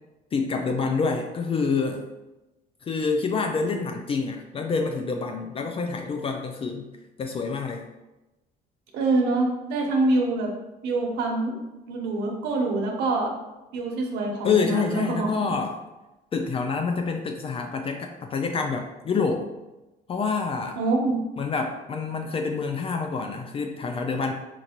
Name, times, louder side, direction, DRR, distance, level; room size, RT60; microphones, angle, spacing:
voice 1, 0.3-2.1 2.8-6.9 7.2-7.8 14.4-15.8 16.3-19.4 20.1-20.8 21.4-24.3, left 4 dB, 35° left, 4 dB, 0.4 m, -27 dB
voice 2, 8.9-10.5 10.8-11.6 11.9-13.3 13.7-15.3 20.8-21.2, right 2 dB, 85° right, 1 dB, 0.8 m, -25 dB
4.5 x 2.5 x 2.8 m, 1.0 s
cardioid pair, 110°, 17 cm